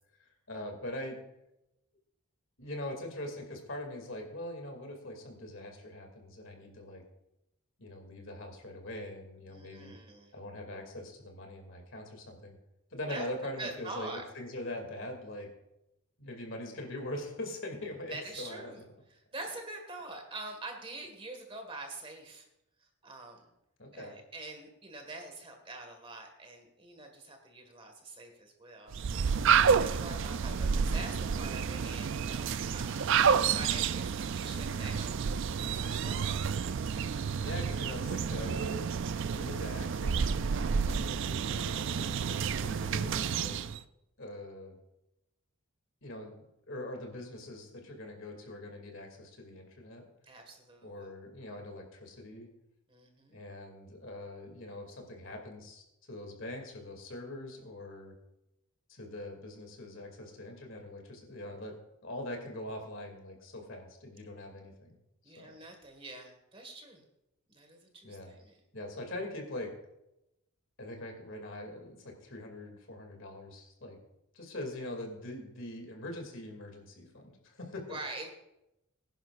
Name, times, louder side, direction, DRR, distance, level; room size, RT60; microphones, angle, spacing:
voice 1, 0.2-1.2 2.6-7.0 7.8-9.9 10.3-12.6 12.9-14.1 14.3-15.5 16.2-18.8 23.8-24.1 29.8-30.1 36.1-36.4 37.4-38.9 39.3-43.6 44.2-44.8 46.0-50.1 50.8-52.5 53.3-58.1 58.9-61.7 62.0-65.0 65.2-65.5 68.0-68.3 68.7-69.7 70.8-74.0 74.3-78.0, left 1 dB, 60° left, 3 dB, 2.5 m, -43 dB
voice 2, 9.5-10.3 13.1-13.3 13.6-14.2 18.1-18.8 19.1-22.5 22.8-23.5 23.9-33.1 33.5-35.2 35.6-36.4 50.2-51.1 52.9-53.4 65.2-67.0 67.5-68.6 77.9-78.3, right 2 dB, 25° right, 4 dB, 1.7 m, -45 dB
sound 1, 28.9-43.8, right 6 dB, 55° right, 0.4 m, -30 dB
20.5 x 11.0 x 2.5 m, 0.88 s
head